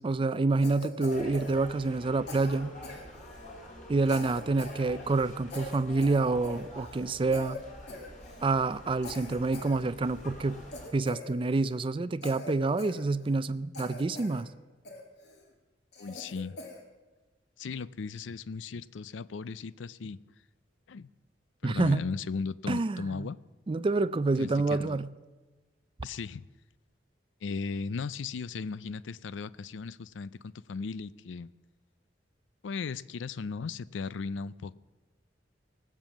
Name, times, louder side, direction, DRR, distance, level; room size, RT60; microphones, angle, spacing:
voice 1, 0.0-2.7 3.9-7.6 8.4-10.6 10.9-14.5 21.6-22.0 22.7-23.3 23.7-25.1, right 3 dB, 30° right, 0.4 m, -28 dB
Cough, 0.6-2.0 2.3-3.5 4.0-4.8 5.1-5.2 5.5-7.1 7.3-7.6 7.9-8.5 9.0-10.2 10.7-11.8 12.2-13.5 13.7-14.4 14.9-15.4 15.9-16.8, left 3 dB, 65° left, 2.3 m, -44 dB
sound 1, 1.1-10.9, equal, 45° left, 3.4 m, -46 dB
voice 2, 16.0-16.6 17.6-20.2 20.9-21.1 21.6-23.4 24.4-25.0 26.0-26.5 27.4-31.5 32.6-34.7, left 4 dB, 90° left, 0.4 m, -37 dB
19.0 x 7.5 x 7.2 m
head